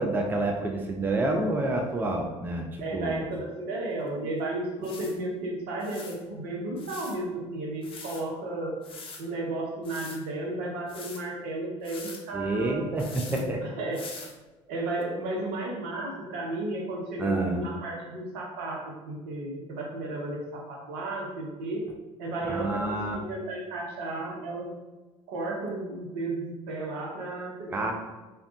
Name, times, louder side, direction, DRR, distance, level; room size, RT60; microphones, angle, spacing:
voice 1, 0.0-2.7 2.9-3.2 12.3-13.6 17.2-17.6 22.5-23.2 27.7-27.9, right 2 dB, 10° right, 1 dB, 0.4 m, -28 dB
voice 2, 2.8-8.8 9.2-12.9 13.3-14.0 14.7-21.9 22.2-24.7 25.3-27.9, right 2 dB, 65° right, -1 dB, 0.7 m, -33 dB
sound 1, 4.1-4.2 4.8-5.1 5.8-6.2 6.8-7.2 7.8-8.2 8.8-9.2 9.8-10.2 10.9-11.2 11.8-12.2 13.0-13.4 13.9-14.3 15.0-15.1, left 4 dB, 35° left, 0.6 m, -43 dB
3.4 x 2.3 x 2.5 m, 1.2 s
figure-of-eight pair, 60°, 16 cm